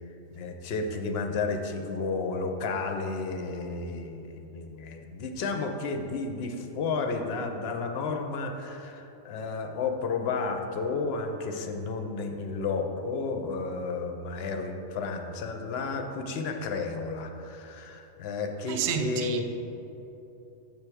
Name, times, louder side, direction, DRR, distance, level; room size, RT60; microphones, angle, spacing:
voice 1, 0.1-19.4, left 4 dB, 60° left, 0.7 m, -32 dB
voice 2, 18.7-19.4, right 7 dB, 75° right, 0.4 m, -29 dB
7.0 x 3.3 x 6.0 m
omnidirectional pair, 1.4 m